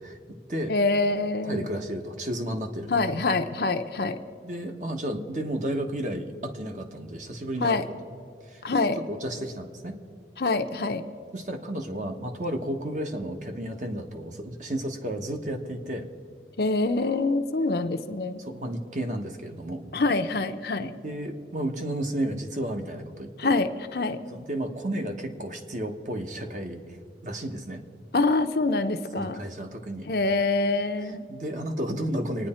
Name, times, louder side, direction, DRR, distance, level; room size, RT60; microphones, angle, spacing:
voice 1, 0.0-0.7 1.5-3.0 4.4-7.8 8.5-8.6 9.1-10.0 11.3-16.1 18.4-19.8 20.8-23.5 24.3-27.0 27.2-27.8 29.1-30.1 31.3-32.5, right 1 dB, 45° right, 5 dB, 1.1 m, -32 dB
voice 2, 0.7-1.7 2.9-4.2 7.6-7.8 8.6-9.0 10.4-11.0 16.6-18.4 19.9-20.9 23.4-24.2 28.1-29.4 30.1-31.3, left 3 dB, 60° left, 7 dB, 0.7 m, -25 dB
26.0 x 9.8 x 4.3 m, 2.5 s
head